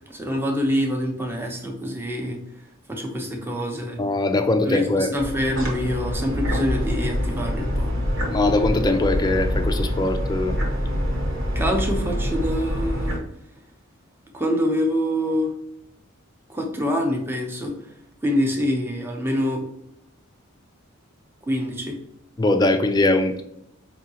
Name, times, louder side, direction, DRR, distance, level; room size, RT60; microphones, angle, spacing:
voice 1, 0.1-2.4 2.9-4.0 4.6-7.9 11.5-13.2 14.3-15.5 16.5-17.9 18.2-19.6 21.5-22.0, equal, 10° right, 1 dB, 0.6 m, -25 dB
voice 2, 4.0-5.1 8.3-10.6 22.4-23.4, left 2 dB, 20° left, 7 dB, 0.3 m, -21 dB
sound 1, 5.2-13.2, equal, 65° right, 1.2 m, -25 dB
4.9 x 2.7 x 2.8 m, 0.77 s
head